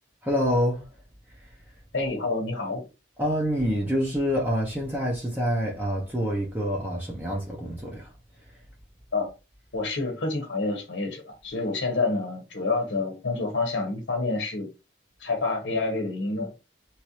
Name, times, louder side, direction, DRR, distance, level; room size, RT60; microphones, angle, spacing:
voice 1, 0.2-0.8 3.2-8.1, equal, 10° right, 0.6 m, -26 dB
voice 2, 1.9-2.8 9.1-9.3 9.7-14.7 15.2-16.5, left 3 dB, 80° left, 0.9 m, -28 dB
3.0 x 2.5 x 2.9 m
head